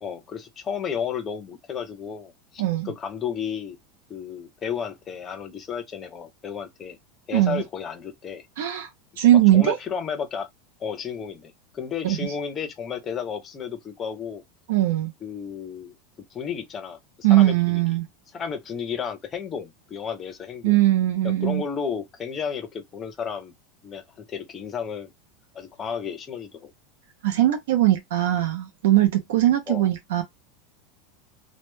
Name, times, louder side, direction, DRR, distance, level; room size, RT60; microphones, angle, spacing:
voice 1, 0.0-3.8 4.1-7.0 7.3-8.4 9.5-10.5 10.8-14.4 15.2-16.0 16.3-17.0 17.3-17.8 18.3-20.8 21.2-23.5 23.8-24.0 24.3-25.1 25.5-26.7 29.7-29.9, left 7 dB, 15° left, 0.4 m, -32 dB
voice 2, 7.3-7.6 8.6-8.9 9.2-9.8 12.0-12.3 14.7-15.1 17.2-18.1 20.6-21.6 27.2-30.2, right 14 dB, 80° right, 0.4 m, -20 dB
2.1 x 2.0 x 3.0 m
supercardioid pair, 180°, 0 cm